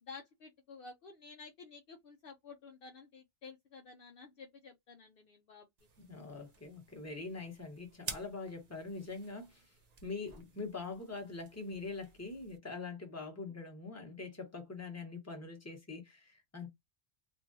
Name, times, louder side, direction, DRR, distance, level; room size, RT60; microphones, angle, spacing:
voice 1, 0.0-5.7 13.5-13.6, left 4 dB, 65° left, 0.7 m, -52 dB
sound 1, 5.8-12.6, right 5 dB, 45° right, 0.7 m, -51 dB
voice 2, 6.0-9.6 10.0-16.7, left 3 dB, 15° left, 1.0 m, -43 dB
2.9 x 2.6 x 2.5 m
omnidirectional pair, 1.1 m